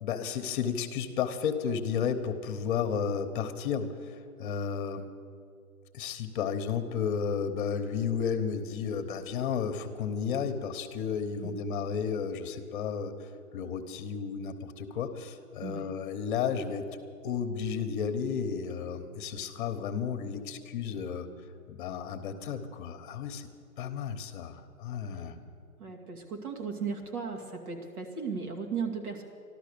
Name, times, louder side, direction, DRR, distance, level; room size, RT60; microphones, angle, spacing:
voice 1, 0.0-5.1 5.9-13.3 13.5-16.9 17.2-21.3 21.7-23.5 23.8-25.4, left 7 dB, 35° left, 8 dB, 1.1 m, -33 dB
voice 2, 25.8-29.2, right 5 dB, 75° right, 2 dB, 2.6 m, -36 dB
13.5 x 12.5 x 6.8 m, 2.3 s
hypercardioid pair, 155°, 44 cm